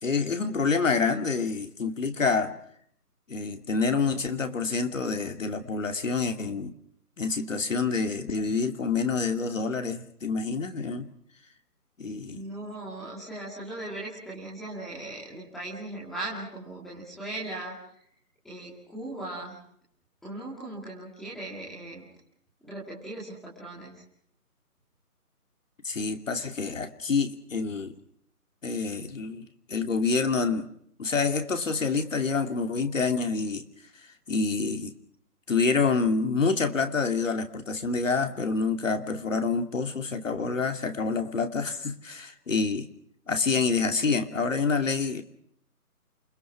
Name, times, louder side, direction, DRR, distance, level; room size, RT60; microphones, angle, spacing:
voice 1, 0.0-2.6 3.3-6.7 7.2-11.1 12.0-12.4 25.8-27.9 28.6-30.7 31.0-33.7 34.3-34.9 35.5-42.9 43.3-45.2, left 4 dB, 55° left, 7 dB, 2.7 m, -27 dB
voice 2, 12.3-17.7 18.4-19.6 20.2-22.1 22.6-24.0, right 2 dB, ahead, -7 dB, 2.2 m, -38 dB
28.5 x 21.5 x 6.0 m, 0.67 s
hypercardioid pair, 175°, 46 cm